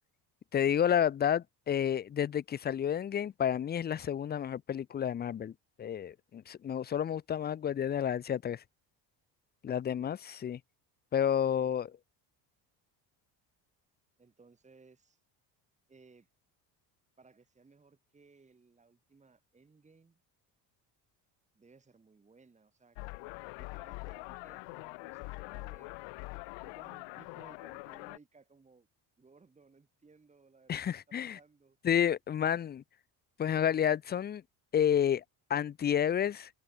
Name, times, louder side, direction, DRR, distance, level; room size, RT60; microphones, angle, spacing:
voice 1, 0.5-5.5 5.8-8.6 9.6-10.6 11.1-11.9 30.7-31.4 31.8-32.8 33.4-34.4 34.7-35.2 35.5-36.5, left 9 dB, 25° left, 0.4 m, -30 dB
voice 2, 11.4-11.9 14.2-15.2 15.9-16.3 17.2-20.2 21.5-23.0 23.6-26.0 26.6-28.9 29.2-31.8, right 4 dB, 15° right, 2.4 m, -61 dB
sound 1, 23.0-28.2, left 29 dB, 90° left, 0.6 m, -44 dB
cardioid pair, 135°, 43 cm